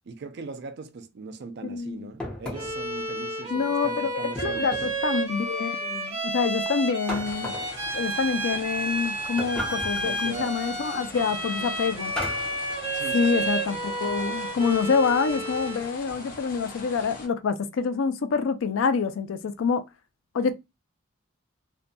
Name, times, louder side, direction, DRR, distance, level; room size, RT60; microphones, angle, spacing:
voice 1, 0.1-4.7 10.0-10.6 12.9-13.5, right 4 dB, 55° right, 0.4 m, -39 dB
voice 2, 1.6-2.1 3.5-7.6 7.9-12.1 13.1-19.8 20.3-20.5, left 5 dB, 75° left, 0.4 m, -26 dB
sound 1, 2.2-2.9 4.3-5.1 7.1-7.8 9.4-10.1 12.2-12.6, left 1 dB, 5° left, 0.8 m, -35 dB
Bowed string instrument, 2.5-15.9, right 2 dB, 25° right, 1.2 m, -31 dB
sound 2, 7.2-17.3, left 3 dB, 45° left, 0.8 m, -42 dB
2.6 x 2.5 x 2.2 m
head